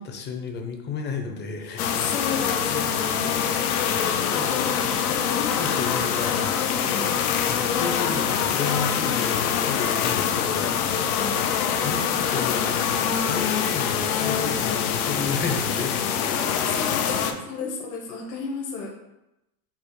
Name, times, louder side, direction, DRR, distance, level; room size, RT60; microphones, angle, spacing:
voice 1, 0.0-1.9 4.1-4.7 5.3-6.6 7.4-10.8 11.8-16.0 17.1-17.4, left 5 dB, 25° left, 4 dB, 0.5 m, -33 dB
voice 2, 1.7-3.5 6.8-7.2 11.0-11.5 13.0-13.3 14.0-14.3 15.6-15.8 16.2-18.9, left 4 dB, 65° left, 0 dB, 1.1 m, -34 dB
sound 1, 1.8-17.3, left 8 dB, 85° left, 0.6 m, -24 dB
5.4 x 2.0 x 4.6 m, 0.90 s
supercardioid pair, 120°, 43 cm